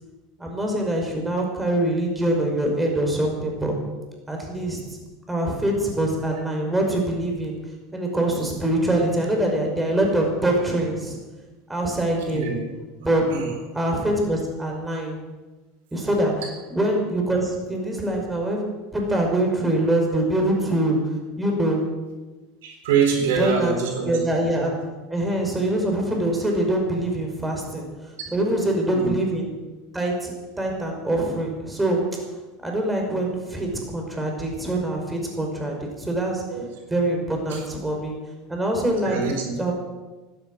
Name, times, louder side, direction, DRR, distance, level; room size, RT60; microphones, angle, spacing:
voice 1, 0.4-3.7 4.3-4.8 5.3-7.5 7.9-11.2 11.7-12.5 13.0-13.2 13.7-15.2 15.9-16.3 16.7-18.6 18.9-21.0 21.4-21.8 23.4-23.8 24.0-24.7 25.1-27.9 28.3-29.5 29.9-32.0 32.6-36.4 36.9-38.2 38.5-39.2 39.6-39.7, right 1 dB, 10° right, 1 dB, 5.5 m, -24 dB
voice 2, 12.3-12.6 13.3-13.5 16.4-16.5 22.6-24.2 28.9-29.1 36.5-36.6 37.5-37.6 39.0-39.5, right 6 dB, 80° right, 3 dB, 3.9 m, -24 dB
16.0 x 12.5 x 6.5 m, 1.2 s
supercardioid pair, 100°, 0 cm